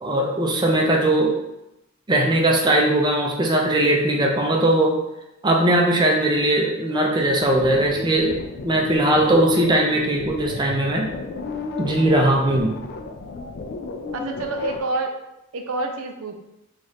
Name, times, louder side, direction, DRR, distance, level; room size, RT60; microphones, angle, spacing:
voice 1, 0.0-1.4 2.1-5.0 5.4-8.4 8.6-11.1 11.8-12.8, right 1 dB, 20° right, 0 dB, 0.5 m, -19 dB
sound 1, 7.2-14.8, left 3 dB, 50° left, 0.4 m, -33 dB
voice 2, 14.1-15.2 15.5-16.5, right 2 dB, 80° right, 4 dB, 0.5 m, -28 dB
3.0 x 2.5 x 4.1 m, 0.89 s
head